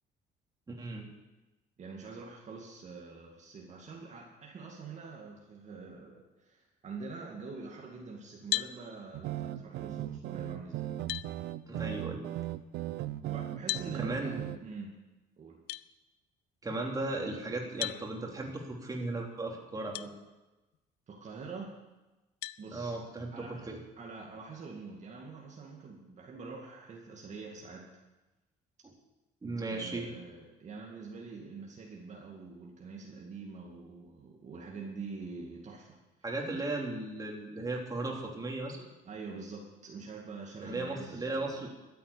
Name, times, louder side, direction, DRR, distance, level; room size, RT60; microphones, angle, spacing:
voice 1, 0.7-1.1 11.7-12.2 13.9-14.5 16.6-20.1 22.7-23.8 29.4-30.1 36.2-38.9 40.6-41.7, right 2 dB, 20° right, -1 dB, 3.2 m, -36 dB
voice 2, 1.8-10.9 13.2-15.0 15.4-15.6 21.1-21.8 22.6-22.9 23.3-23.7 24.0-27.9 29.7-36.0 36.5-36.6 39.0-41.6, right 4 dB, 45° right, -1 dB, 2.3 m, -45 dB
sound 1, 8.5-8.8 10.4-10.5 11.1-11.3 13.7-13.9 15.7-15.8 17.8-18.0 19.9-20.1 20.7-20.8 22.4-22.6, left 17 dB, 75° left, 0.5 m, -34 dB
sound 2, 9.1-14.6, right 13 dB, 80° right, 0.6 m, -38 dB
13.5 x 8.5 x 8.5 m, 1.1 s
cardioid pair, 110°, 17 cm